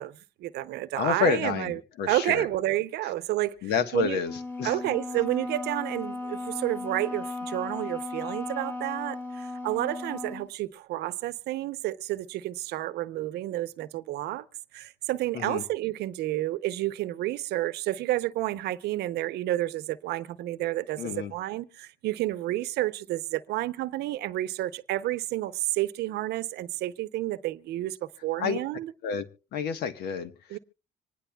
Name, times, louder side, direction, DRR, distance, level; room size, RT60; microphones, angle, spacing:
voice 1, 0.0-1.8 2.1-4.2 4.6-14.5 14.7-28.9 30.5-30.6, right 15 dB, 80° right, 0.7 m, -30 dB
voice 2, 1.0-2.4 3.6-4.7 15.3-15.6 21.0-21.3 28.4-28.6 29.0-29.2 29.5-30.3, left 6 dB, 75° left, 1.2 m, -29 dB
Wind instrument woodwind instrument, 4.2-10.5, left 3 dB, 10° left, 2.3 m, -36 dB
26.0 x 10.0 x 2.3 m
cardioid pair, 110°, 17 cm